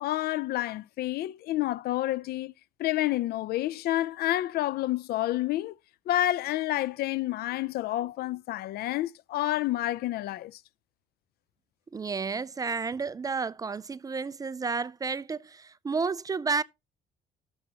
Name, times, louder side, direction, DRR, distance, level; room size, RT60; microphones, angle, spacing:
voice 1, 0.0-2.5 2.8-5.8 6.1-10.6, left 15 dB, 65° left, 0.4 m, -29 dB
voice 2, 11.9-16.6, right 4 dB, 20° right, 0.4 m, -31 dB
13.0 x 7.3 x 2.9 m
cardioid pair, 110°, 17 cm